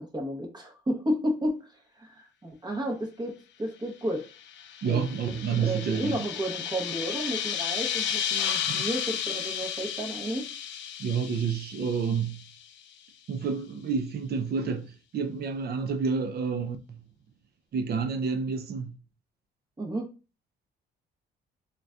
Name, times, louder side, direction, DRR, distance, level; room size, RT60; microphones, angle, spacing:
voice 1, 0.0-4.3 4.8-5.1 5.6-10.4 19.8-20.1, equal, 20° right, 0.8 m, -32 dB
sound 1, 4.3-12.6, left 9 dB, 70° left, 0.5 m, -33 dB
voice 2, 4.8-6.2 8.7-8.8 11.0-12.4 13.3-17.0 17.7-18.9, right 6 dB, 55° right, 0.5 m, -29 dB
3.9 x 2.2 x 2.4 m
cardioid pair, 90°, 20 cm